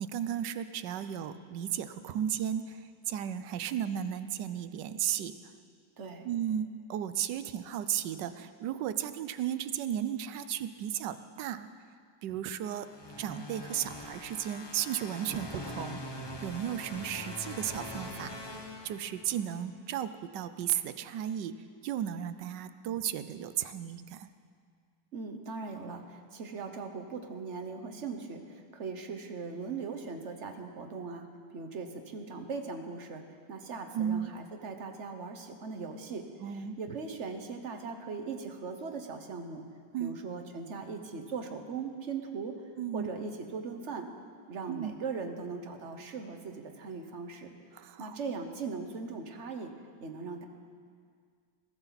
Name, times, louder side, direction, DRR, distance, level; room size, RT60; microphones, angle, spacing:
voice 1, 0.0-5.3 6.2-11.7 12.2-12.9 13.2-18.6 18.8-21.6 21.8-24.3 33.9-34.3 36.4-36.8 39.9-40.2 42.8-43.1 44.7-45.0 47.7-48.2, right 10 dB, 75° right, 12 dB, 1.3 m, -34 dB
voice 2, 6.0-6.3 25.1-31.3 31.5-33.2 33.5-39.6 40.0-42.6 42.9-44.1 44.5-49.7 50.0-50.5, right 4 dB, 45° right, 6 dB, 1.3 m, -39 dB
sound 1, 12.8-19.5, left 1 dB, 20° left, 0.7 m, -43 dB
20.5 x 14.5 x 4.1 m, 2.1 s
omnidirectional pair, 1.9 m